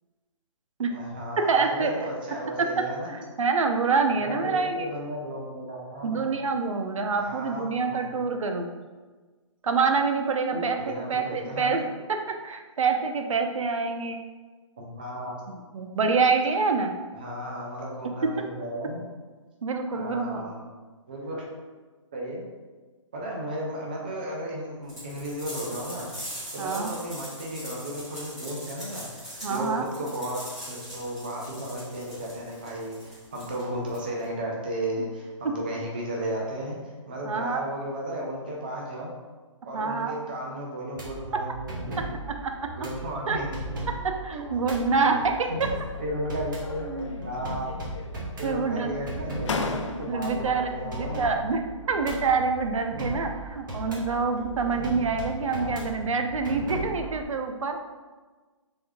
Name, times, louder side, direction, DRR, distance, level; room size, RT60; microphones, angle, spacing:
voice 1, 0.9-3.1 4.1-6.3 7.1-8.1 10.5-11.8 14.8-15.4 17.1-19.0 19.9-20.6 21.1-21.4 22.1-22.4 23.1-26.1 26.5-30.4 30.7-39.1 39.6-42.1 42.7-43.6 44.3-44.4 45.0-45.2 45.5-45.6 46.0-47.8 48.4-51.3 53.9-54.0 55.5-55.8, right 1 dB, 15° right, -3 dB, 0.3 m, -34 dB
voice 2, 1.5-2.0 3.1-4.9 6.0-8.7 9.6-11.8 12.4-14.2 15.7-16.9 19.6-20.4 26.6-26.9 29.4-29.9 37.2-37.6 39.7-40.1 42.4-42.5 43.3-43.4 44.2-45.5 48.4-49.0 50.1-50.7 51.0-51.6 51.9-57.8, right 4 dB, 75° right, 4 dB, 0.5 m, -26 dB
sound 1, 24.9-34.3, equal, ahead, 1.1 m, -41 dB
sound 2, 40.9-57.2, right 1 dB, 40° right, 1.0 m, -37 dB
sound 3, 45.6-46.2 46.6-47.3 47.6-48.4 49.0-49.1 49.4-50.4, left 3 dB, 65° left, 0.5 m, -35 dB
3.5 x 3.5 x 3.5 m, 1.3 s
hypercardioid pair, 170°, 17 cm